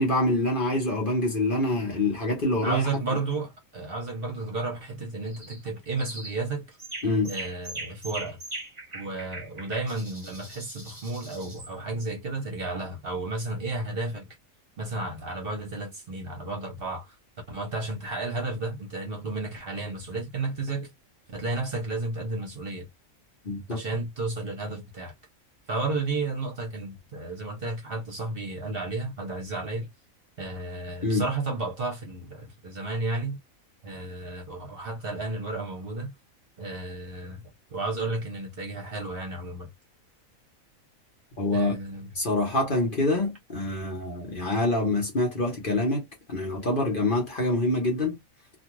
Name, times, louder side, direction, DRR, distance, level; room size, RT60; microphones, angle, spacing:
voice 1, 0.0-2.8 7.0-7.3 23.4-23.8 31.0-31.2 41.4-41.7 42.1-46.0 46.3-48.2, left 2 dB, 40° left, 1.1 m, -25 dB
voice 2, 2.6-6.8 7.2-8.4 8.9-14.3 14.8-17.1 17.5-20.9 21.3-22.9 23.7-25.1 25.7-29.9 30.4-33.4 33.8-36.1 36.6-37.4 37.7-39.7 41.5-42.1, right 2 dB, 50° right, 1.0 m, -32 dB
sound 1, 5.3-5.6 6.0-6.4 6.8-11.7, right 2 dB, 25° right, 0.8 m, -40 dB
2.6 x 2.4 x 3.0 m
omnidirectional pair, 1.4 m